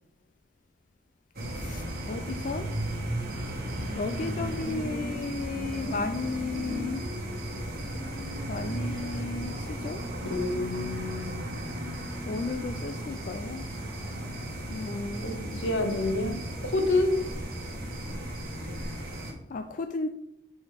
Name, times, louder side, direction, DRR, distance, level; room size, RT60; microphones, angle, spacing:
sound 1, 1.3-19.3, right 1 dB, 55° right, 1.3 m, -35 dB
voice 1, 1.5-2.7 3.9-7.0 8.5-10.0 12.2-13.6 14.7-15.6 19.5-20.1, left 3 dB, 45° left, 7 dB, 0.4 m, -34 dB
voice 2, 10.2-11.5 15.2-17.2, left 2 dB, 80° left, 5 dB, 1.1 m, -28 dB
9.4 x 4.2 x 3.5 m, 0.79 s
head